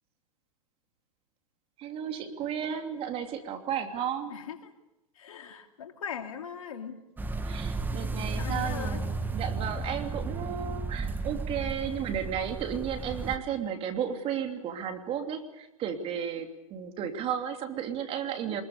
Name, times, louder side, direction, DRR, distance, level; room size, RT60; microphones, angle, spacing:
voice 1, 1.8-4.4 7.4-18.6, right 8 dB, 30° right, 5 dB, 3.0 m, -33 dB
voice 2, 5.1-7.0 8.3-9.0, left 8 dB, 75° left, 5 dB, 2.8 m, -39 dB
sound 1, 7.2-13.4, right 3 dB, 10° right, 1.4 m, -33 dB
24.5 x 21.5 x 6.8 m, 0.93 s
hypercardioid pair, 115°, 18 cm